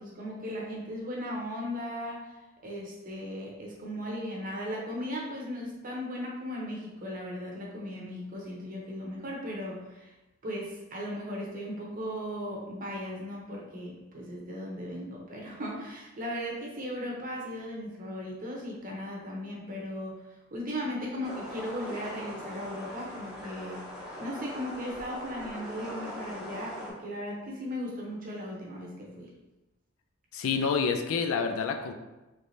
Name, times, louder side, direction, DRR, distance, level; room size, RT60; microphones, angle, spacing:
voice 1, 0.0-2.3 2.6-10.1 10.4-20.2 20.5-23.9 24.2-29.3, equal, 40° right, -2 dB, 0.7 m, -37 dB
sound 1, 21.2-26.9, left 1 dB, 5° right, 0.6 m, -41 dB
voice 2, 30.3-31.9, left 5 dB, 70° left, 5 dB, 0.3 m, -28 dB
3.2 x 3.2 x 2.6 m, 1.0 s
head